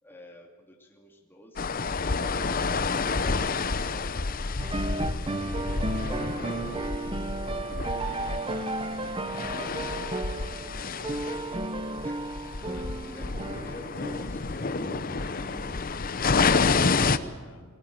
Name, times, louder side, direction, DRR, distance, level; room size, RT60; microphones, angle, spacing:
voice 1, 0.0-4.1 6.0-7.7 8.1-9.1 10.4-11.7 12.0-12.3 13.1-16.9, left 1 dB, 10° left, 0 dB, 2.7 m, -50 dB
sound 1, 1.6-17.2, left 4 dB, 40° left, 0.8 m, -29 dB
sound 2, 3.6-10.3, equal, 60° right, 4.5 m, -56 dB
voice 2, 4.5-5.2 12.6-13.0 15.2-15.6 15.9-17.6, left 1 dB, 70° left, 1 dB, 4.3 m, -44 dB
sound 3, 4.6-15.9, right 2 dB, 25° right, 0.7 m, -34 dB
22.0 x 18.0 x 9.0 m, 1.5 s
head